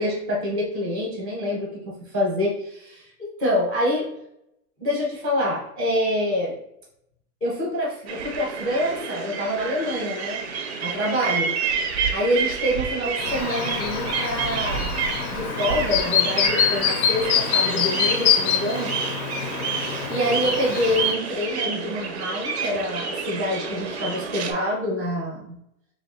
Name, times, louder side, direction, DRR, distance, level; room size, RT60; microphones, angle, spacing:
voice 1, 0.0-3.1 3.4-4.1 4.8-6.6 7.4-10.4 10.8-11.5 12.1-14.9 15.3-18.9 20.1-25.6, left 1 dB, 10° left, -4 dB, 0.5 m, -26 dB
sound 1, 8.1-24.5, right 5 dB, 45° right, 0.4 m, -29 dB
Chirp tweet, 13.2-21.1, left 8 dB, 70° left, 0.6 m, -25 dB
3.0 x 2.5 x 4.1 m, 0.77 s
supercardioid pair, 180°, 46 cm